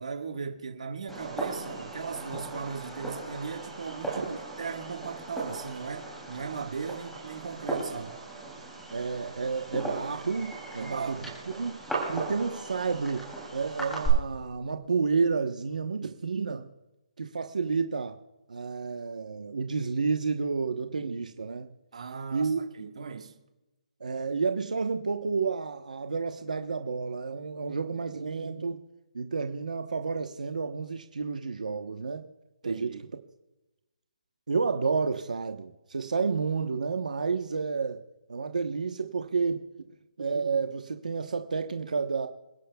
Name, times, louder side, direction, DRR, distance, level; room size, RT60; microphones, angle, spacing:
voice 1, 0.0-8.1 10.8-11.3 21.9-23.4 32.6-33.0, right 5 dB, 60° right, 1.7 m, -38 dB
Fireworks, 1.1-14.1, right 2 dB, ahead, 2.9 m, -38 dB
voice 2, 8.9-11.8 12.1-16.7 17.2-18.2 18.5-21.7 22.3-22.6 24.0-28.8 29.1-32.3 32.6-33.0 34.5-38.0 38.3-39.6 40.2-42.3, right 5 dB, 90° right, 1.0 m, -30 dB
27.5 x 10.5 x 2.3 m
hypercardioid pair, 175°, 4 cm